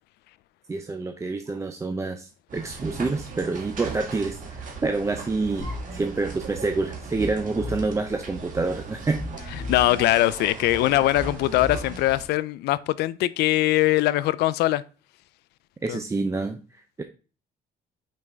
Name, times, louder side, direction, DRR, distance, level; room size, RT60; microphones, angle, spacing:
voice 1, 0.7-9.2 15.8-17.0, right 3 dB, 15° right, 0.5 m, -28 dB
sound 1, 1.4-1.8 2.5-2.7 3.7-4.2 5.5-6.0 6.4-6.5 7.3-7.8 8.7-9.6 10.4-10.8, right 2 dB, 80° right, 2.4 m, -51 dB
sound 2, 2.5-12.3, right 4 dB, 50° right, 1.7 m, -38 dB
sound 3, 5.6-6.0 7.2-8.0 9.2-10.0 11.2-12.0, left 1 dB, 35° left, 2.2 m, -35 dB
voice 2, 9.7-14.8 15.9-16.0, left 16 dB, 75° left, 0.4 m, -22 dB
5.3 x 5.2 x 3.4 m
cardioid pair, 110°, 17 cm